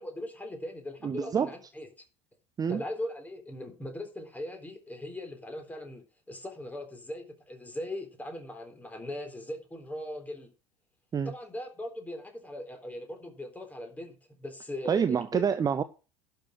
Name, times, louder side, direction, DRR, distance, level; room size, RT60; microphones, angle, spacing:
voice 1, 0.0-1.9 2.7-10.5 11.2-15.4, left 1 dB, 10° left, 4 dB, 3.8 m, -39 dB
voice 2, 1.0-1.5 2.6-2.8 11.1-11.3 14.9-15.8, right 7 dB, 25° right, 12 dB, 0.8 m, -27 dB
11.5 x 6.7 x 6.3 m, 0.33 s
figure-of-eight pair, 75°, 16 cm